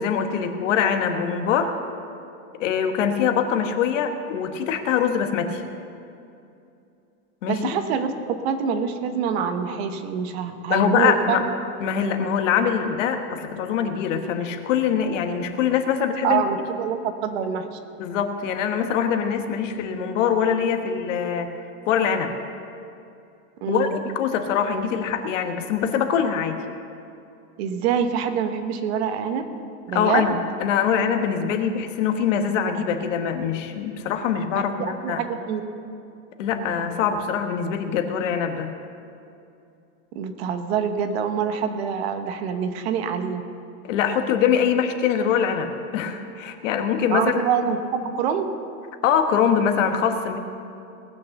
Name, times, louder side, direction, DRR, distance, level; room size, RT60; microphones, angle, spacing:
voice 1, 0.0-1.8 2.6-5.6 7.4-7.7 10.7-11.5 11.8-16.4 18.0-21.5 21.9-22.3 23.7-26.6 29.9-35.2 36.4-38.7 43.8-47.4 49.0-50.4, left 7 dB, 60° left, 6 dB, 1.3 m, -23 dB
voice 2, 7.5-8.1 8.4-11.4 16.2-17.8 23.6-24.0 27.6-29.4 29.9-30.4 34.5-35.6 40.1-43.4 47.1-48.5, right 7 dB, 50° right, 8 dB, 1.1 m, -25 dB
19.0 x 6.5 x 7.0 m, 2.6 s
supercardioid pair, 175°, 42 cm